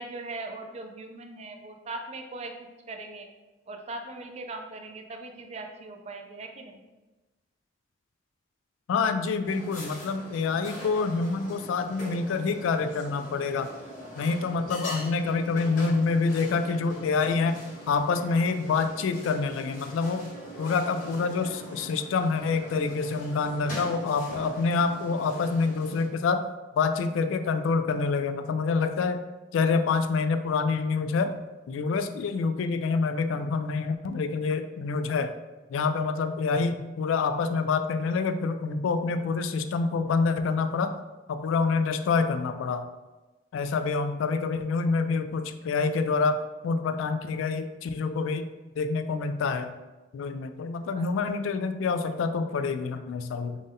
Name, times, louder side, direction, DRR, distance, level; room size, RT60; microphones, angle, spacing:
voice 1, 0.0-2.6 2.9-3.3 3.7-6.8 50.9-51.1, right 2 dB, 35° right, 4 dB, 0.4 m, -39 dB
voice 2, 8.9-13.7 14.2-17.6 17.9-20.3 20.6-26.4 26.8-29.2 29.5-31.4 31.7-35.4 35.7-40.9 41.3-42.9 43.5-46.4 46.6-48.5 48.8-49.7 50.1-53.6, left 4 dB, 90° left, 10 dB, 0.3 m, -27 dB
sound 1, 9.4-26.0, equal, 45° left, 1.2 m, -43 dB
3.7 x 2.6 x 3.5 m, 1.1 s
head